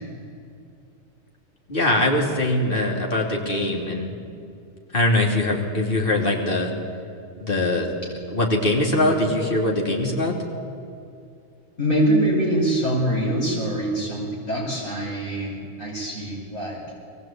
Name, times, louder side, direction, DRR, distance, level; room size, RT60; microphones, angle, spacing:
voice 1, 1.7-4.1 4.9-6.7 7.4-7.9 8.3-10.4, left 1 dB, 45° left, 0 dB, 3.2 m, -22 dB
voice 2, 11.8-16.8, right 1 dB, 80° left, -4 dB, 6.1 m, -24 dB
23.0 x 19.0 x 8.9 m, 2.5 s
omnidirectional pair, 1.3 m